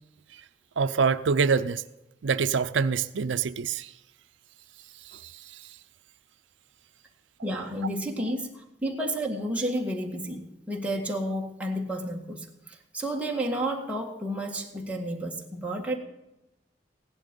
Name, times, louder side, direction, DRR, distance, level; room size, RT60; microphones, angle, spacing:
voice 1, 0.8-1.8 2.2-3.9 5.0-5.8, right 5 dB, 85° right, 0.5 m, -26 dB
voice 2, 7.4-16.0, right 1 dB, 5° right, 1.9 m, -31 dB
16.5 x 11.0 x 5.3 m
head